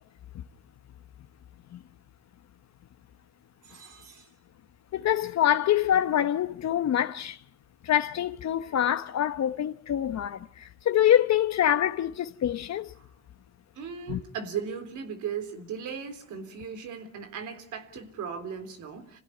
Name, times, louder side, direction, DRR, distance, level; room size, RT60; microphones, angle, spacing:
voice 1, 3.6-4.3 13.0-13.1 13.8-19.2, right 7 dB, 80° right, 3.8 m, -37 dB
voice 2, 4.9-7.4 7.8-12.9 14.1-14.2, left 11 dB, 60° left, 1.0 m, -25 dB
27.5 x 16.5 x 9.8 m
cardioid pair, 90°, 30 cm